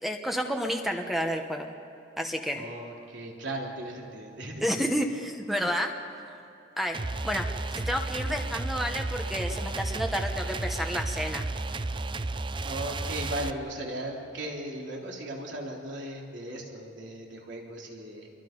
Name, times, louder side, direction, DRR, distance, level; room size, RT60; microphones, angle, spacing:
voice 1, 0.0-1.7 2.2-2.7 4.6-5.9 6.8-7.0 7.2-7.5 7.8-11.5, equal, ahead, 3 dB, 1.0 m, -30 dB
voice 2, 2.5-4.9 12.6-18.3, right 1 dB, 70° right, -1 dB, 3.7 m, -37 dB
sound 1, 6.9-13.5, right 2 dB, 25° right, 0.5 m, -33 dB
28.0 x 23.0 x 5.4 m, 2.7 s
head